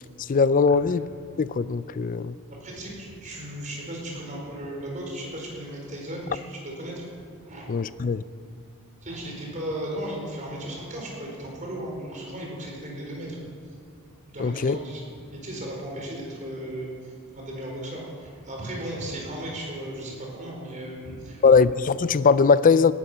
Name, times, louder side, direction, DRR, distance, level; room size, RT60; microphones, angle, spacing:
voice 1, 0.3-1.0 1.4-2.4 7.7-8.2 14.4-14.8 21.4-22.9, left 5 dB, 40° left, 16 dB, 0.4 m, -20 dB
voice 2, 2.5-7.0 7.4-7.7 9.0-13.4 14.3-15.1 15.3-21.4, right 1 dB, 35° right, -1 dB, 4.4 m, -36 dB
18.0 x 12.5 x 5.6 m, 2.4 s
head